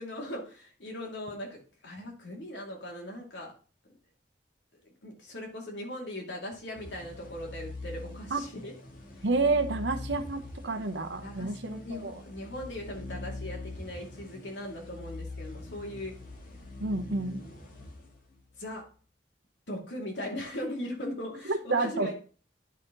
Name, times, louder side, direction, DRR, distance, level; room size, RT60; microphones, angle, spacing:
voice 1, 0.0-3.5 4.8-8.7 9.2-9.3 11.2-16.1 18.6-18.8 19.7-22.1, left 1 dB, 80° left, 0 dB, 2.5 m, -39 dB
sound 1, 6.8-18.6, left 2 dB, 50° left, 2.0 m, -43 dB
voice 2, 9.2-12.1 16.8-17.4 21.4-22.1, right 3 dB, 75° right, 7 dB, 1.0 m, -29 dB
10.5 x 4.2 x 3.9 m, 0.40 s
head